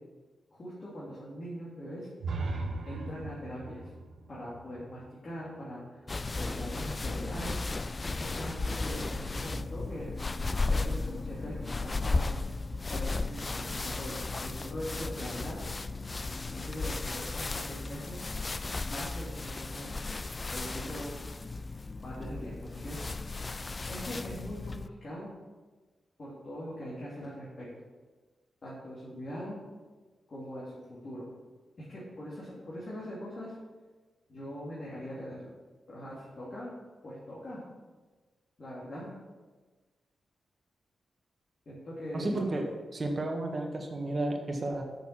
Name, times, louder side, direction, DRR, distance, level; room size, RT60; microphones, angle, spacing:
voice 1, 0.5-2.1 2.8-3.9 4.3-6.1 6.3-7.6 8.2-10.2 10.7-12.3 12.9-15.6 16.5-18.2 18.8-20.0 20.5-21.1 22.0-23.0 23.2-23.3 23.9-25.3 26.2-27.7 28.6-29.6 30.3-31.3 31.8-33.5 34.3-35.5 35.9-36.7 37.0-37.6 38.6-39.1 41.7-42.4, equal, 50° left, -7 dB, 2.6 m, -41 dB
sound 1, 2.2-6.0, right 3 dB, 75° right, 1.1 m, -38 dB
sound 2, 6.1-24.9, left 3 dB, 30° left, 0.3 m, -35 dB
voice 2, 42.1-44.8, right 2 dB, 40° right, 2 dB, 1.5 m, -32 dB
6.7 x 6.6 x 5.9 m, 1.3 s
cardioid pair, 80°, 0 cm